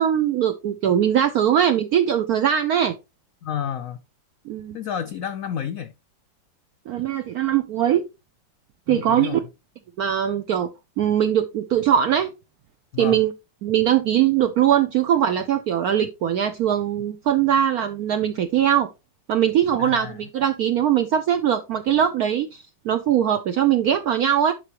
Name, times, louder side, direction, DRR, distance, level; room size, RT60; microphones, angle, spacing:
voice 1, 0.0-2.9 4.5-4.8 6.9-8.0 8.9-9.4 10.0-10.7 11.0-12.3 13.0-13.3 13.6-18.9 19.3-24.5, right 10 dB, 65° right, 0.9 m, -21 dB
voice 2, 3.4-4.0 4.7-5.9 8.9-9.4 12.9-13.2 19.8-20.2, left 8 dB, 70° left, 0.8 m, -30 dB
11.5 x 4.7 x 2.9 m
omnidirectional pair, 2.0 m